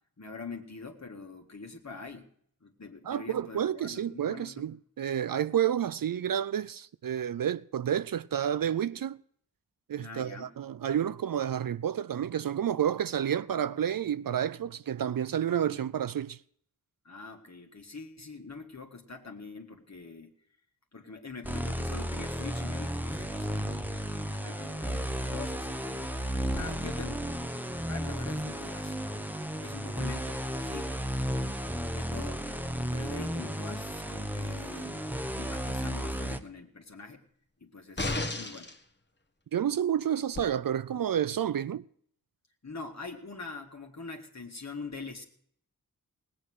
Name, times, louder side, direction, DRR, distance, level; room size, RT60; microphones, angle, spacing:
voice 1, 0.2-2.3 2.6-4.7 10.0-10.5 15.7-15.8 17.0-20.3 20.9-26.0 26.5-27.3 27.9-29.0 29.6-30.9 31.9-32.4 32.9-35.0 35.3-37.2 37.6-38.7 42.6-45.2, left 4 dB, 45° left, 1.8 m, -44 dB
voice 2, 3.1-9.2 9.9-16.4 39.5-41.8, right 9 dB, 65° right, 0.5 m, -30 dB
sound 1, 21.4-36.4, equal, 5° right, 1.1 m, -33 dB
sound 2, 38.0-38.8 40.4-40.5, left 2 dB, 30° left, 1.5 m, -32 dB
18.0 x 8.7 x 6.1 m
wide cardioid pair, 60°, 36 cm